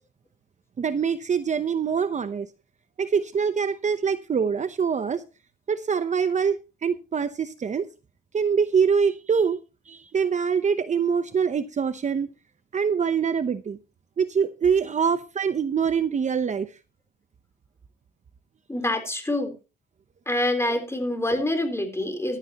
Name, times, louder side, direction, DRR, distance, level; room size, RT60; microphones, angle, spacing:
voice 1, 0.8-2.5 3.0-5.2 5.7-7.9 8.3-9.6 9.9-12.3 12.7-13.8 14.2-16.7, right 6 dB, 35° right, 11 dB, 0.8 m, -24 dB
voice 2, 18.7-19.5 20.3-22.4, left 1 dB, 15° left, 6 dB, 3.8 m, -26 dB
15.0 x 12.0 x 2.9 m, 0.31 s
cardioid pair, 90°, 20 cm